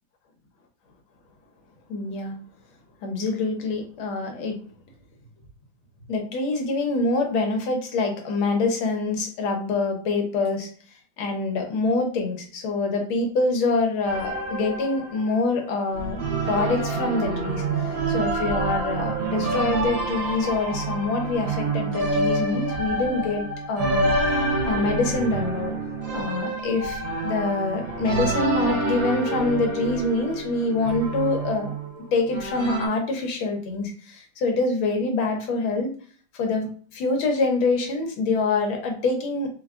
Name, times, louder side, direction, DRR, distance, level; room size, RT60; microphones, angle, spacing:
voice 1, 1.9-2.4 3.0-4.6 6.1-10.7 11.2-16.2 16.5-17.6 18.1-24.1 24.6-25.8 26.1-31.7 32.1-35.9 36.3-39.5, left 3 dB, 75° left, 3 dB, 1.7 m, -25 dB
sound 1, 14.0-15.6 15.9-32.9, right 2 dB, 70° right, 1.6 m, -27 dB
4.2 x 2.3 x 3.5 m, 0.43 s
omnidirectional pair, 2.3 m